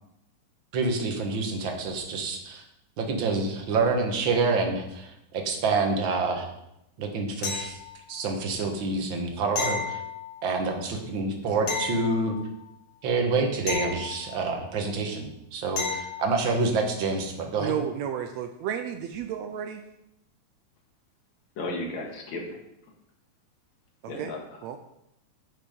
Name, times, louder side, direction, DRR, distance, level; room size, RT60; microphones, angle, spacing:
voice 1, 0.7-2.6 3.0-6.5 7.0-7.8 8.1-10.0 10.4-12.3 13.0-15.3 15.5-17.7, right 3 dB, 50° right, 2 dB, 1.7 m, -27 dB
sound 1, 7.4-8.2 9.6-10.6 11.7-12.7 13.7-14.7 15.8-16.4 19.1-19.2, left 5 dB, 80° left, 3.0 m, -33 dB
voice 2, 17.6-19.8 24.0-24.3 24.6-24.8, right 9 dB, 80° right, 7 dB, 1.6 m, -32 dB
voice 3, 21.6-22.6 24.1-24.6, left 2 dB, 65° left, 1 dB, 2.7 m, -34 dB
9.8 x 5.9 x 5.2 m, 0.83 s
omnidirectional pair, 3.5 m